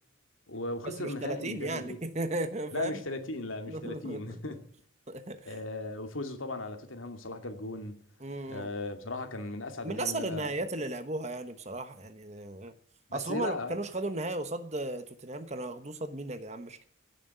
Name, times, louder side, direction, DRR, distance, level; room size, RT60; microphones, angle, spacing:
voice 1, 0.5-2.0 2.7-4.6 5.4-8.0 8.5-10.5 13.1-13.7, left 2 dB, 85° left, 2.3 m, -37 dB
voice 2, 1.0-2.9 3.7-4.4 5.1-5.6 8.2-8.7 9.8-12.7 13.1-16.8, right 2 dB, 35° right, 1.1 m, -35 dB
16.5 x 7.5 x 9.1 m
head